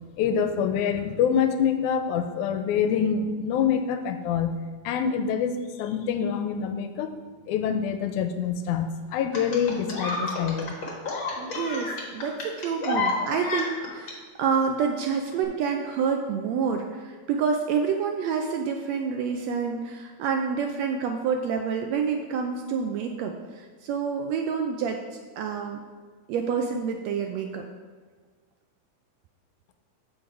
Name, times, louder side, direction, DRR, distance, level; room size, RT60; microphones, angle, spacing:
voice 1, 0.2-4.6 4.8-7.1 7.5-10.8, left 7 dB, 85° left, 8 dB, 2.0 m, -26 dB
sound 1, 9.3-14.1 15.3-15.4, left 3 dB, 50° left, 1.8 m, -30 dB
voice 2, 11.4-25.0 25.4-25.8 26.3-27.7, right 6 dB, 80° right, 4 dB, 1.5 m, -28 dB
7.9 x 5.4 x 4.6 m, 1.5 s
omnidirectional pair, 3.5 m